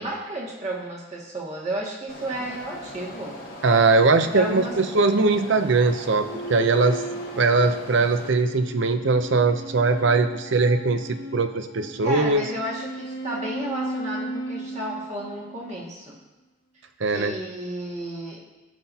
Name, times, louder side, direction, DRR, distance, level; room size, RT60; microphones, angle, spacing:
voice 1, 0.0-3.4 4.3-4.7 12.0-16.2 17.1-18.4, right 1 dB, 35° right, -4 dB, 2.0 m, -32 dB
sound 1, 2.1-8.3, left 1 dB, 45° left, 1.2 m, -40 dB
voice 2, 3.6-7.0 7.4-12.4 17.0-17.3, right 3 dB, 65° right, 9 dB, 0.6 m, -21 dB
sound 2, 6.2-15.8, right 2 dB, 65° left, 1.1 m, -36 dB
16.0 x 5.9 x 2.8 m, 1.1 s
head